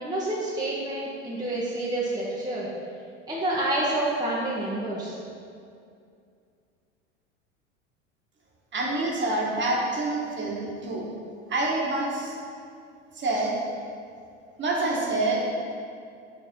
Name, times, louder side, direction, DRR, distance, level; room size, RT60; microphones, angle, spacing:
voice 1, 0.0-2.7 3.3-5.2, right 1 dB, 10° right, -6 dB, 1.1 m, -28 dB
voice 2, 8.7-11.1 11.5-12.4 13.1-13.6 14.6-15.4, right 2 dB, 30° right, -3 dB, 1.5 m, -27 dB
5.4 x 4.0 x 5.3 m, 2.4 s
hypercardioid pair, 80°, 36 cm